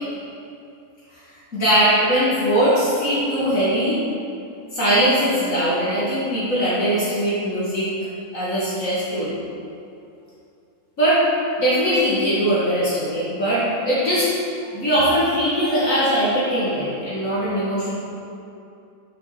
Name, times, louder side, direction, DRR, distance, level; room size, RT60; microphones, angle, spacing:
voice 1, 1.5-4.0 4.7-7.9 8.3-9.4 11.0-11.2 11.6-14.3 14.7-17.9, equal, 65° left, -10 dB, 2.1 m, -20 dB
6.9 x 6.3 x 5.9 m, 2.6 s
omnidirectional pair, 1.6 m